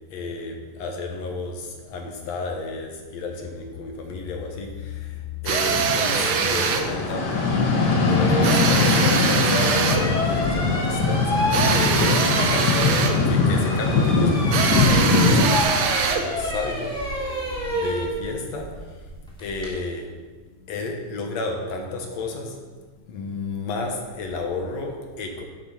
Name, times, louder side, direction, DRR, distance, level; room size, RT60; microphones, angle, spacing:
voice 1, 0.1-13.0 13.2-19.1 19.4-20.2 20.6-22.6 23.0-25.4, left 3 dB, 65° left, 2 dB, 2.4 m, -32 dB
sound 1, 5.5-15.6, left 3 dB, 50° left, 1.4 m, -21 dB
sound 2, 5.5-6.9 8.4-10.1 11.5-13.2 14.5-16.3, right 6 dB, 70° right, 1.3 m, -23 dB
sound 3, 7.5-7.6 8.1-13.3 13.6-19.7, left 1 dB, ahead, 3.0 m, -29 dB
11.5 x 7.4 x 5.8 m, 1.4 s
omnidirectional pair, 3.4 m